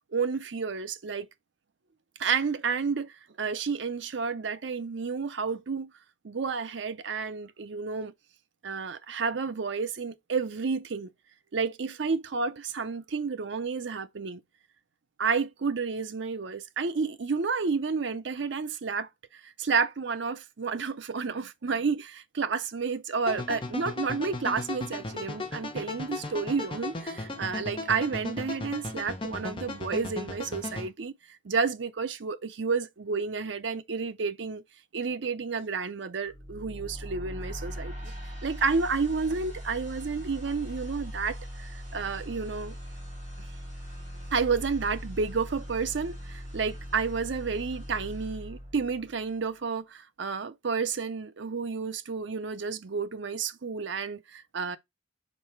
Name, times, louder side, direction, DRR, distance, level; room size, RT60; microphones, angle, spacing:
voice 1, 0.1-1.3 2.2-5.9 6.2-8.1 8.6-11.1 11.5-14.4 15.2-19.1 19.4-31.1 31.4-34.6 34.9-38.1 38.4-42.8 44.3-54.8, right 5 dB, 70° right, 0.6 m, -31 dB
sound 1, 23.3-30.9, left 2 dB, 25° left, 1.0 m, -36 dB
sound 2, 36.3-49.3, equal, 40° right, 3.0 m, -40 dB
5.2 x 4.0 x 4.4 m
head